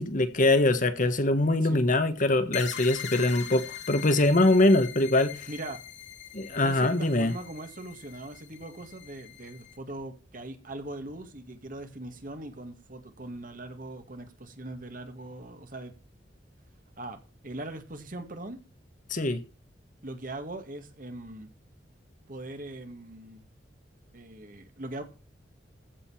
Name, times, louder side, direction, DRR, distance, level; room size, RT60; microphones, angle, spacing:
voice 1, 0.0-5.5 6.3-7.3 19.1-19.4, left 2 dB, 45° left, 1.4 m, -23 dB
sound 1, 2.5-9.8, left 9 dB, 80° left, 2.5 m, -42 dB
voice 2, 5.5-5.8 6.5-15.9 17.0-18.6 20.0-21.5 22.3-23.5 24.1-25.0, right 2 dB, 50° right, 2.1 m, -41 dB
15.0 x 5.4 x 7.1 m
head